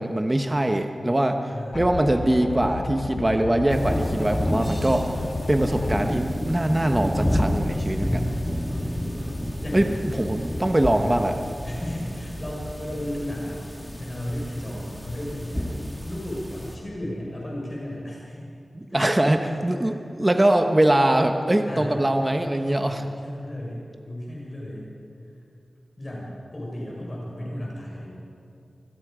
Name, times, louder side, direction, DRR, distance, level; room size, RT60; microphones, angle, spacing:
voice 1, 0.0-1.4 1.7-5.1 5.5-8.2 9.7-11.4 18.9-23.0, right 1 dB, 20° right, 5 dB, 1.1 m, -22 dB
voice 2, 1.5-1.9 7.8-9.9 10.4-10.5 10.9-11.2 11.6-13.6 14.0-15.7 16.0-18.4 18.9-20.0 21.6-22.0 22.7-24.9 26.0-28.1, left 1 dB, 30° left, -4 dB, 5.4 m, -35 dB
sound 1, 1.7-6.1, left 4 dB, 60° left, 0.9 m, -33 dB
sound 2, 3.7-16.8, equal, 10° left, 1.9 m, -30 dB
25.5 x 21.0 x 5.0 m, 2.5 s
wide cardioid pair, 100°, 0 cm